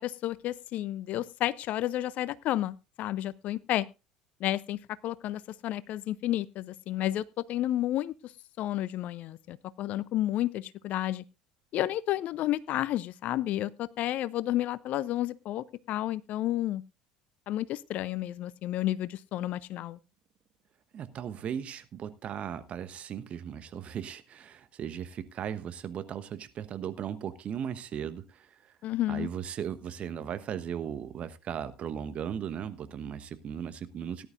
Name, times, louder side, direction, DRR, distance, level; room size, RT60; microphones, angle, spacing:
voice 1, 0.0-3.9 4.4-4.8 5.0-8.1 8.6-11.2 11.7-16.8 17.5-20.0 28.8-29.3, left 14 dB, 50° left, 20 dB, 0.6 m, -31 dB
voice 2, 20.9-28.8 29.1-34.3, right 8 dB, 40° right, 11 dB, 1.2 m, -37 dB
18.0 x 11.0 x 2.5 m, 0.26 s
figure-of-eight pair, 65°, 3 cm